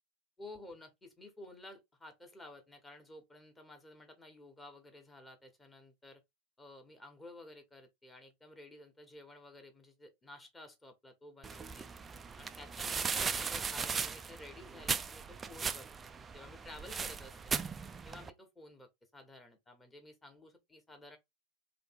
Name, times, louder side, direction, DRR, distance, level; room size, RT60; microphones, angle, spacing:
voice 1, 0.4-6.2 6.6-11.9 12.4-17.6 18.0-21.2, left 1 dB, 15° left, 1.3 m, -53 dB
sound 1, 11.4-18.3, right 5 dB, 15° right, 0.4 m, -38 dB
3.3 x 3.1 x 4.6 m
figure-of-eight pair, 90°, 0 cm